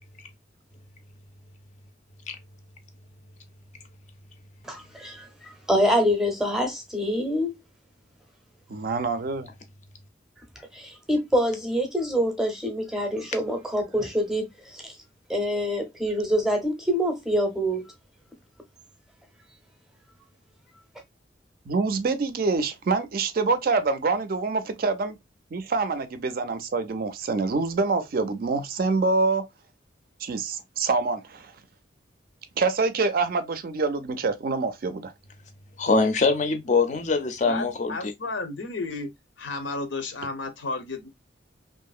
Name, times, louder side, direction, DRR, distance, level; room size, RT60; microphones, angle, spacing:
voice 1, 4.6-7.6 10.7-14.9 15.3-17.8, equal, 5° right, 0.6 m, -26 dB
voice 2, 8.7-9.5 21.7-25.2 25.5-29.4 30.2-31.5 32.6-35.1, right 4 dB, 50° right, 0.4 m, -26 dB
voice 3, 35.8-38.1, left 4 dB, 40° left, 0.5 m, -23 dB
voice 4, 37.4-39.1 39.4-41.1, left 3 dB, 80° left, 0.7 m, -32 dB
2.8 x 2.5 x 2.3 m
head